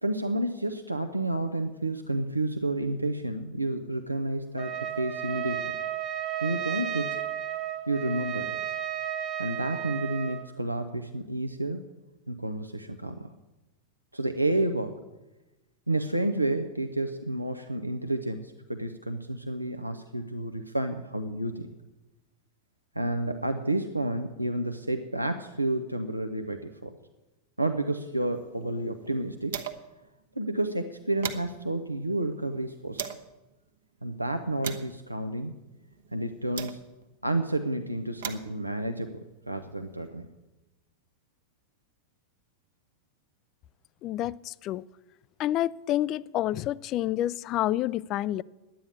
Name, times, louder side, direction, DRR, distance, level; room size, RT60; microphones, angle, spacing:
voice 1, 0.0-5.8 6.4-7.2 7.9-8.6 9.4-11.9 12.3-13.3 14.1-15.0 15.9-21.7 22.9-27.0 27.6-29.7 30.4-33.0 34.0-35.5 36.1-36.8 37.2-40.3, right 1 dB, 85° right, 7 dB, 0.7 m, -30 dB
Trumpet, 4.6-10.5, right 10 dB, 35° right, 1.3 m, -33 dB
sound 1, 28.2-30.0 30.3-30.4 30.8-33.3 33.9-37.2 37.9-40.1, right 8 dB, 60° right, 1.1 m, -41 dB
voice 2, 44.0-44.8 45.4-48.4, left 13 dB, 35° left, 21 dB, 0.4 m, -28 dB
11.5 x 9.5 x 8.5 m, 1.1 s
figure-of-eight pair, 90°, 0 cm